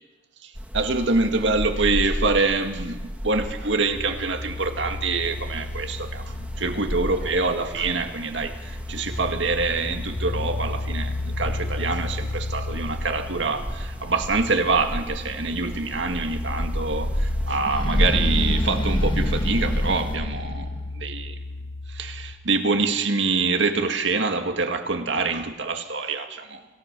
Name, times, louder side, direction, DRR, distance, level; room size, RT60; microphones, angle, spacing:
voice 1, 0.4-21.4 21.9-26.7, right 3 dB, 75° right, 2.1 m, -25 dB
sound 1, 0.5-20.2, equal, 10° right, 1.9 m, -33 dB
sound 2, 3.9-22.3, left 2 dB, 90° left, 7.2 m, -33 dB
sound 3, 17.6-20.9, equal, 25° left, 1.7 m, -26 dB
27.0 x 17.0 x 6.9 m
head